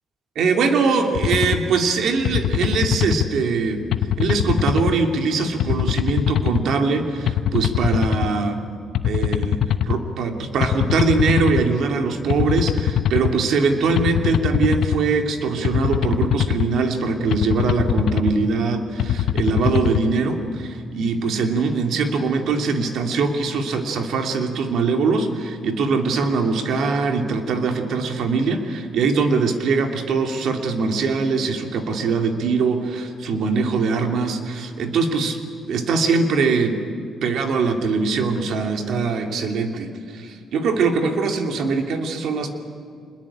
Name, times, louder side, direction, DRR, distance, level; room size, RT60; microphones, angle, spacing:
voice 1, 0.3-3.8 4.2-8.6 9.0-35.4 35.7-36.8 37.2-42.5, right 4 dB, 75° right, 4 dB, 2.7 m, -22 dB
sound 1, 1.1-1.6 2.2-3.3 3.9-4.9 5.6-6.6 7.3-8.3 8.9-10.0 10.6-11.6 12.3-13.3 14.0-15.0 15.6-16.7 17.3-18.3 19.0-20.0, left 10 dB, 75° left, 0.9 m, -22 dB
25.5 x 21.5 x 8.8 m, 2.3 s
cardioid pair, 90°, 0 cm